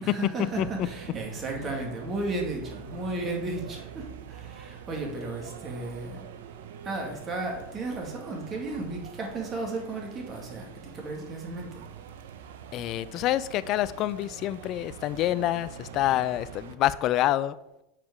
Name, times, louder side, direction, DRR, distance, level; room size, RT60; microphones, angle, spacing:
voice 1, 0.0-6.2 6.8-11.8, right 2 dB, 30° right, 1 dB, 2.1 m, -34 dB
sound 1, 0.5-16.8, right 8 dB, 70° right, 0.7 m, -44 dB
voice 2, 12.7-17.6, left 13 dB, 45° left, 16 dB, 0.4 m, -27 dB
7.4 x 4.7 x 5.0 m, 0.89 s
hypercardioid pair, 95°, 0 cm